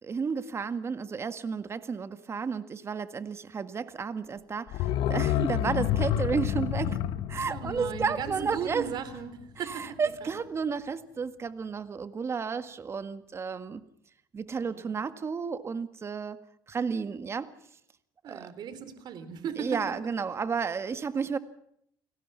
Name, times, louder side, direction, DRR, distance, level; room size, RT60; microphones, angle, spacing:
voice 1, 0.0-7.0 7.3-8.9 9.7-13.8 14.3-16.4 16.7-17.5 18.3-18.5 19.6-21.4, right 5 dB, 35° right, 11 dB, 1.7 m, -32 dB
sound 1, 4.7-9.4 9.7-9.8, left 11 dB, 80° left, 1.6 m, -30 dB
voice 2, 7.5-10.3 14.5-14.9 18.2-20.0, right 7 dB, 60° right, 11 dB, 3.9 m, -37 dB
30.0 x 18.5 x 5.8 m, 0.71 s
cardioid pair, 110°, 8 cm